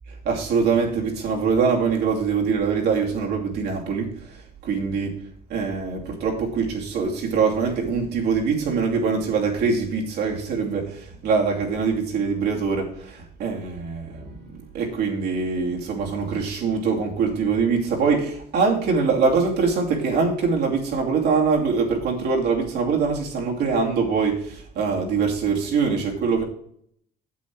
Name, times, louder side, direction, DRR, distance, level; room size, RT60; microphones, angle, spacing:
voice 1, 0.1-5.2 5.5-14.4 14.7-26.4, right 5 dB, 75° right, -1 dB, 2.8 m, -23 dB
8.4 x 7.8 x 4.7 m, 0.66 s
cardioid pair, 110°, 17 cm